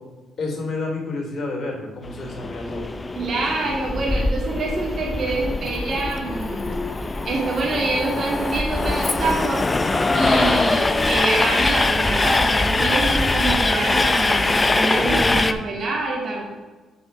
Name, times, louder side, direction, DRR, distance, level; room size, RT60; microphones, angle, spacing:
voice 1, 0.4-2.9 14.9-15.4, left 2 dB, 55° left, -1 dB, 2.9 m, -29 dB
Train, 2.0-15.5, left 2 dB, 20° left, 0.5 m, -22 dB
voice 2, 3.1-6.7 7.1-16.5, right 2 dB, 50° right, -3 dB, 2.3 m, -26 dB
7.7 x 5.6 x 5.9 m, 1.3 s
cardioid pair, 90°, 0 cm